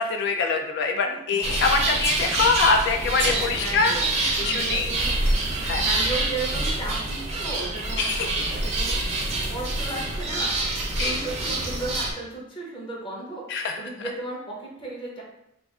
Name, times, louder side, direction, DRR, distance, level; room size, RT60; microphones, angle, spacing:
voice 1, 0.0-3.9 4.4-4.9 5.6-5.8 8.0-8.3 11.0-11.1 13.5-13.8, left 4 dB, 60° left, 4 dB, 0.3 m, -24 dB
voice 2, 1.0-1.6 3.2-5.2 5.5-9.2 9.5-10.5 11.0-15.2, right 2 dB, 25° left, -3 dB, 0.7 m, -35 dB
sound 1, 1.4-12.1, right 2 dB, 35° right, 0.5 m, -26 dB
2.4 x 2.3 x 3.5 m, 0.80 s
head